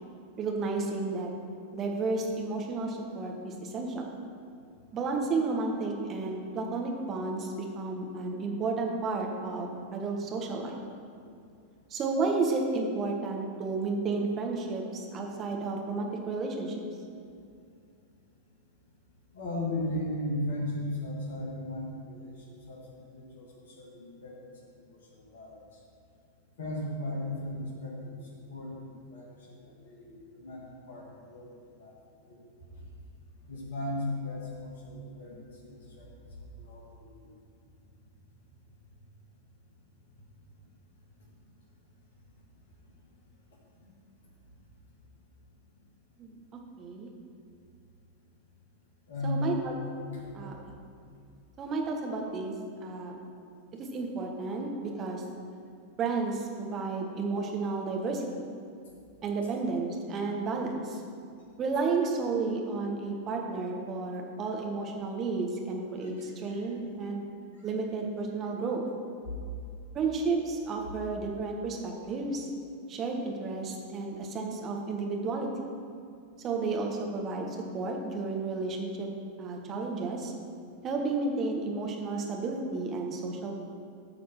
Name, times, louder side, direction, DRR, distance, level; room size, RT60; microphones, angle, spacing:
voice 1, 0.4-1.3 1.7-4.1 4.9-10.8 11.9-16.8 46.2-47.1 49.2-49.7 50.3-50.5 51.6-52.5 52.8-53.2 53.8-55.2 56.0-58.4 59.2-61.0 61.6-67.2 67.6-68.9 69.9-72.5 72.9-75.7 76.4-79.1 79.4-80.3 80.8-83.5, right 3 dB, 30° right, 1 dB, 1.4 m, -32 dB
voice 2, 19.3-25.6 26.6-28.2 28.5-31.9 32.3-32.4 32.7-32.9 33.4-37.3 43.8-43.9 49.1-49.6 50.1-50.5 66.0-66.7 68.6-68.7 69.3-69.4, left 1 dB, 60° left, -2 dB, 1.9 m, -37 dB
12.0 x 4.2 x 5.9 m, 2.5 s
figure-of-eight pair, 90°, 0 cm